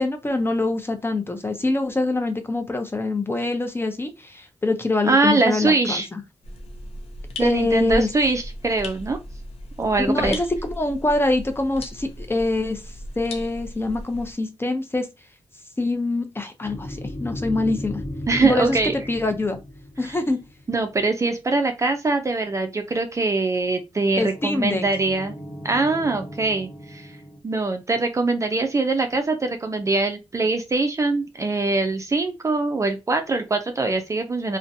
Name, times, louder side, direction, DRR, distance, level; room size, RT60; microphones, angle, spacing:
voice 1, 0.0-6.2 7.4-8.1 10.0-12.8 13.2-15.1 15.8-18.0 18.4-19.6 20.0-20.4 24.2-24.8, left 2 dB, 25° left, 0.5 m, -24 dB
voice 2, 5.0-6.1 7.4-9.2 9.8-10.4 18.3-19.0 20.1-20.2 20.7-25.3 25.6-27.1 27.4-34.6, right 3 dB, 30° right, 0.4 m, -23 dB
sound 1, 6.4-14.3, left 1 dB, 80° left, 0.6 m, -36 dB
sound 2, 16.6-21.0 24.0-27.4, equal, 45° left, 1.0 m, -36 dB
2.5 x 2.1 x 2.5 m
cardioid pair, 70°, 10 cm